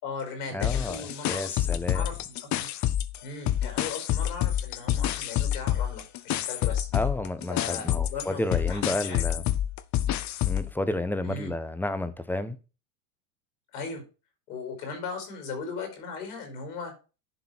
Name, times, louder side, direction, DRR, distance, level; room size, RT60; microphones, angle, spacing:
voice 1, 0.0-2.7 3.2-6.9 7.5-9.4 11.2-11.5 13.7-14.0 14.5-16.9, left 4 dB, 80° left, 5.0 m, -38 dB
voice 2, 0.5-2.0 6.9-9.4 10.4-12.6, left 1 dB, 5° left, 1.0 m, -31 dB
sound 1, 0.6-3.2 3.5-10.7, left 12 dB, 40° left, 0.8 m, -28 dB
11.0 x 3.8 x 6.1 m
supercardioid pair, 105°, 46 cm